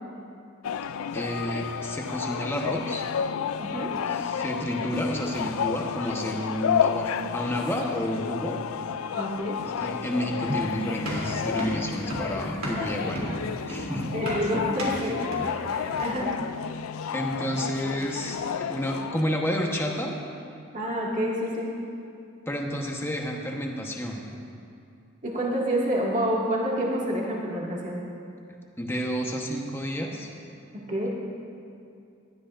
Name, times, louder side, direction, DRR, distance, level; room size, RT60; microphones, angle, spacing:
sound 1, 0.6-19.2, left 7 dB, 90° left, 0.4 m, -31 dB
voice 1, 1.1-3.0 4.1-8.6 9.6-13.4 13.7-14.1 17.1-20.1 22.5-24.2 28.8-30.3, equal, 10° left, 0 dB, 1.1 m, -30 dB
voice 2, 3.6-4.0 9.1-9.6 14.0-15.2 15.7-16.3 20.7-21.7 25.2-28.0 30.7-31.1, equal, 35° right, -4 dB, 2.1 m, -28 dB
sound 2, 10.5-16.3, right 1 dB, 90° right, 3.0 m, -34 dB
19.0 x 12.5 x 2.6 m, 2.5 s
head